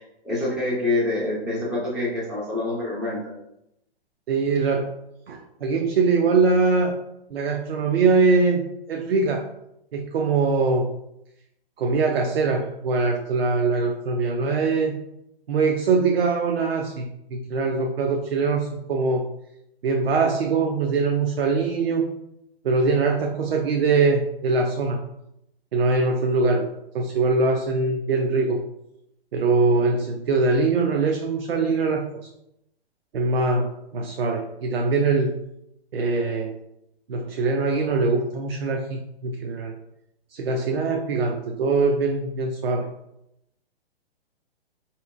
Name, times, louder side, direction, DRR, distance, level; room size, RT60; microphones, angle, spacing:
voice 1, 0.0-3.3, left 2 dB, 5° right, -5 dB, 0.3 m, -26 dB
voice 2, 4.3-4.9 5.3-6.9 7.3-8.6 8.9-9.5 9.9-10.9 11.8-14.9 15.5-19.3 19.8-22.1 22.6-25.0 25.7-28.6 29.3-32.3 33.1-35.3 35.9-36.6 37.1-39.7 40.3-42.9, right 4 dB, 70° right, 2 dB, 0.5 m, -22 dB
4.2 x 2.8 x 2.4 m, 0.81 s
figure-of-eight pair, 125°, 31 cm